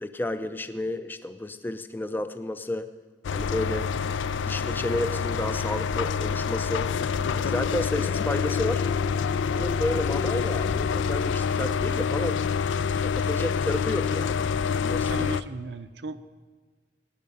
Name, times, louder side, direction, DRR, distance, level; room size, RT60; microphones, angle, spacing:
voice 1, 0.0-2.9 3.3-3.9 4.5-6.9 7.3-8.8 9.5-12.4 13.0-15.1, left 1 dB, 10° left, 11 dB, 0.4 m, -31 dB
sound 1, 3.2-15.4, left 6 dB, 75° left, 0.4 m, -27 dB
sound 2, 3.3-11.3, left 1 dB, 50° left, 1.6 m, -45 dB
voice 2, 15.1-16.3, right 3 dB, 60° right, 12 dB, 0.6 m, -36 dB
16.5 x 9.7 x 5.4 m, 1.4 s
head